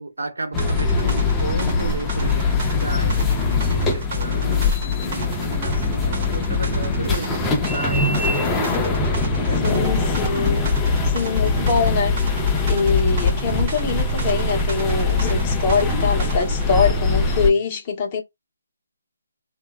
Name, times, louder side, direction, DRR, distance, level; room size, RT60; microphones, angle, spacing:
voice 1, 0.0-8.8 9.5-10.2 16.7-17.6, right 2 dB, 90° right, 0.9 m, -33 dB
sound 1, 0.5-17.5, left 3 dB, 10° left, 0.5 m, -22 dB
sound 2, 0.6-16.7, right 4 dB, 40° right, 1.0 m, -37 dB
voice 2, 9.6-12.2 12.7-18.2, left 5 dB, 30° left, 0.9 m, -23 dB
2.7 x 2.2 x 2.3 m
figure-of-eight pair, 155°, 0 cm